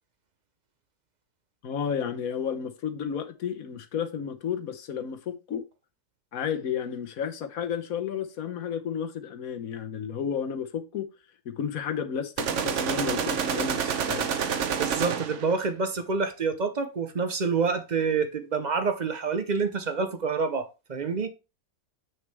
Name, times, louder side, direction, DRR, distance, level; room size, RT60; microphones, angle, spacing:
voice 1, 1.6-5.6 6.3-11.1 11.4-14.3, left 7 dB, 65° left, 1.3 m, -32 dB
sound 1, 12.4-15.5, right 7 dB, 55° right, 1.0 m, -28 dB
voice 2, 14.7-21.3, right 5 dB, 40° right, 0.7 m, -27 dB
7.4 x 6.4 x 3.4 m
omnidirectional pair, 1.7 m